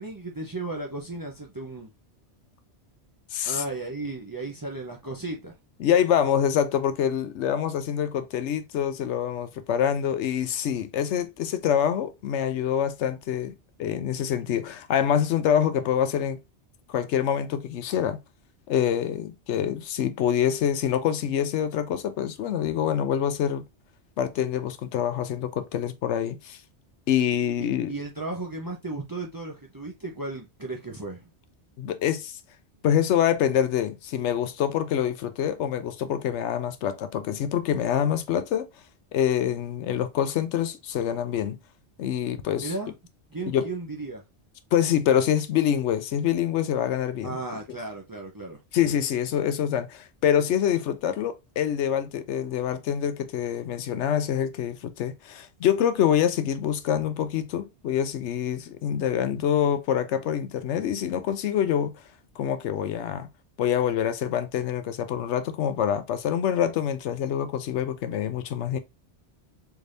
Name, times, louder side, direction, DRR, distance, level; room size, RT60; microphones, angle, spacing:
voice 1, 0.0-1.9 3.4-5.5 27.6-31.3 42.6-42.9 43.3-44.2 47.2-48.6, right 2 dB, 25° right, 0.4 m, -35 dB
voice 2, 3.3-3.6 5.8-16.4 16.9-18.2 18.7-23.6 24.2-26.6 27.1-27.9 31.8-32.4 32.8-38.7 39.1-41.6 42.0-42.7 43.5-43.7 44.7-47.4 48.7-61.9 62.4-63.3 63.6-68.8, left 9 dB, 85° left, 0.9 m, -26 dB
3.5 x 3.3 x 2.5 m
omnidirectional pair, 1.2 m